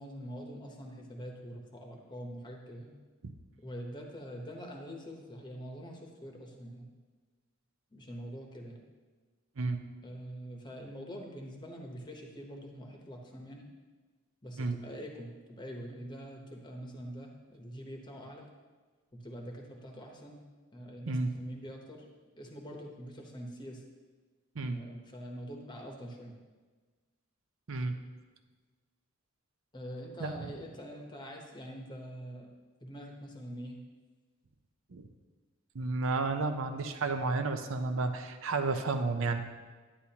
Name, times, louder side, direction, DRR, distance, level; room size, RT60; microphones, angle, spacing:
voice 1, 0.0-2.9 3.6-6.9 7.9-8.8 10.0-13.7 14.4-18.5 19.1-20.4 20.7-22.0 22.4-23.8 24.6-26.3 29.7-32.5 32.8-33.8, equal, 20° left, 1 dB, 0.9 m, -44 dB
voice 2, 35.7-39.4, right 3 dB, 65° right, 7 dB, 0.6 m, -32 dB
10.0 x 9.4 x 2.9 m, 1.4 s
head